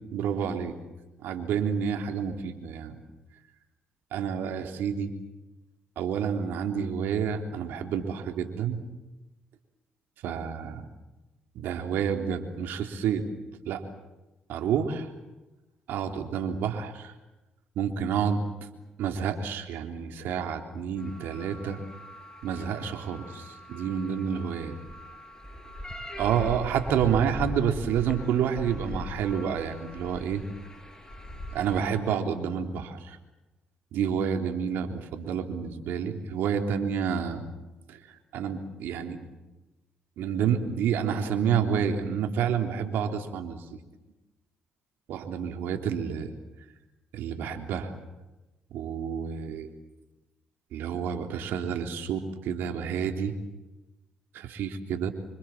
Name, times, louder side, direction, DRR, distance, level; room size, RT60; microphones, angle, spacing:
voice 1, 0.1-0.7 1.2-3.0 4.1-5.1 6.0-8.8 10.2-10.9 11.6-13.3 13.7-13.8 14.5-15.1 15.9-17.1 17.8-18.4 19.0-21.8 22.4-24.7 26.2-30.4 31.5-33.2 33.9-37.5 37.9-38.0 38.3-39.2 40.2-43.8 45.1-46.3 47.1-47.9 48.7-49.7 50.7-53.3 54.3-55.1, right 7 dB, 75° right, 4 dB, 3.5 m, -29 dB
sound 1, 21.0-32.0, left 1 dB, 20° left, 7.0 m, -40 dB
27.5 x 25.0 x 7.5 m, 1.0 s
supercardioid pair, 55°, 4 cm